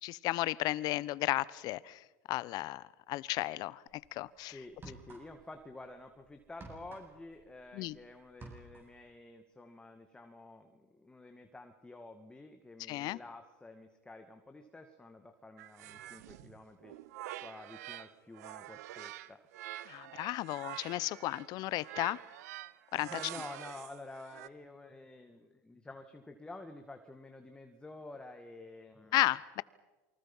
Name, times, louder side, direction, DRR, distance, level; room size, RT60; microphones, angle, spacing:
voice 1, 0.0-3.8 4.1-4.6 7.7-8.0 12.9-13.2 19.9-22.2 22.9-23.1 29.1-29.6, left 17 dB, 50° left, 21 dB, 0.9 m, -34 dB
sound 1, 3.9-4.1 4.7-5.6 5.9-8.0 8.2-9.0, right 3 dB, 25° right, 7.7 m, -52 dB
voice 2, 4.5-16.9 17.4-19.4 23.0-29.2, left 2 dB, 10° left, 5 dB, 2.1 m, -50 dB
sound 2, 15.6-18.1 18.3-24.5, right 15 dB, 80° right, 1.0 m, -47 dB
28.0 x 24.5 x 5.6 m, 1.2 s
supercardioid pair, 110°, 8 cm